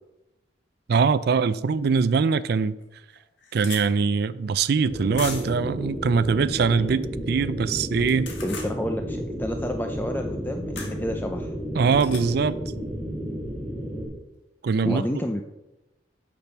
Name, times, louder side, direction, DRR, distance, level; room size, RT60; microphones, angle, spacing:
voice 1, 0.9-2.8 3.5-8.3 11.8-12.6 14.6-15.0, right 5 dB, 60° right, 13 dB, 0.4 m, -22 dB
sound 1, 2.2-2.3 2.8-2.9 3.1-3.8 5.1-5.6 8.0-8.7 10.8-11.0 11.9-12.2, left 5 dB, 90° left, 1.8 m, -37 dB
sound 2, 4.9-14.1, equal, 35° left, 3.4 m, -32 dB
voice 2, 8.4-11.5 14.8-15.4, left 1 dB, 10° left, 5 dB, 0.5 m, -30 dB
8.7 x 6.0 x 5.9 m, 0.97 s
head